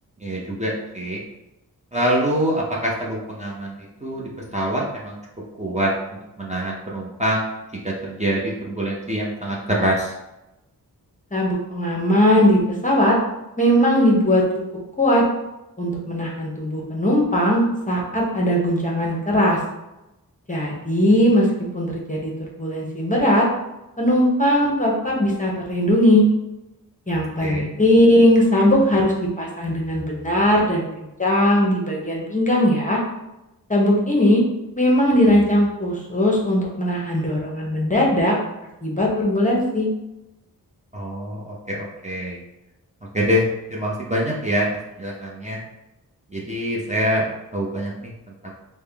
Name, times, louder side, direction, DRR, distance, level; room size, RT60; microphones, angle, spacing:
voice 1, 0.2-1.2 1.9-5.2 5.6-7.4 7.8-10.1 27.4-27.7 40.9-42.4 43.1-44.7 45.0-45.6 46.3-47.3 47.5-48.1 48.4-48.5, equal, 20° right, -5 dB, 0.6 m, -25 dB
voice 2, 11.3-13.2 13.6-14.4 15.0-15.2 15.8-19.6 20.5-21.5 21.7-22.3 22.6-23.5 24.0-26.3 27.1-33.0 33.7-34.4 34.8-38.4 38.8-39.9, equal, 20° left, -3 dB, 0.8 m, -19 dB
3.5 x 2.1 x 3.4 m, 0.96 s
wide cardioid pair, 70°, 37 cm